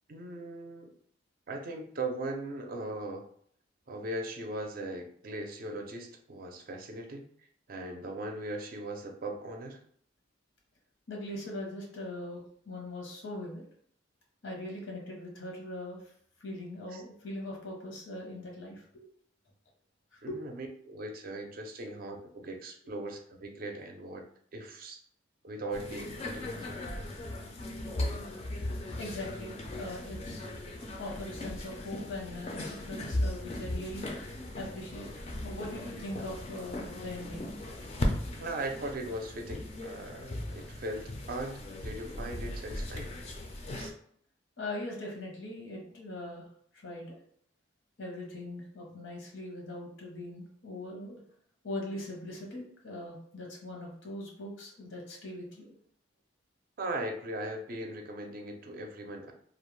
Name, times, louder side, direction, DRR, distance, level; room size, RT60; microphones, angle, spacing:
voice 1, 0.1-0.9 1.5-3.3 3.9-7.3 7.7-9.8 16.9-17.0 20.2-24.2 24.5-25.0 25.4-26.8 38.4-43.1 43.7-43.9 56.8-59.3, right 2 dB, 50° right, 3 dB, 0.4 m, -39 dB
voice 2, 11.1-13.6 14.4-16.1 16.4-18.8 20.1-20.3 29.0-30.4 31.0-34.1 34.5-35.1 35.4-37.5 44.6-46.5 46.7-47.2 48.0-51.2 51.6-55.7, left 1 dB, 85° left, -1 dB, 0.9 m, -41 dB
sound 1, 25.7-43.9, left 1 dB, 35° left, 0.4 m, -37 dB
2.3 x 2.1 x 3.0 m, 0.62 s
head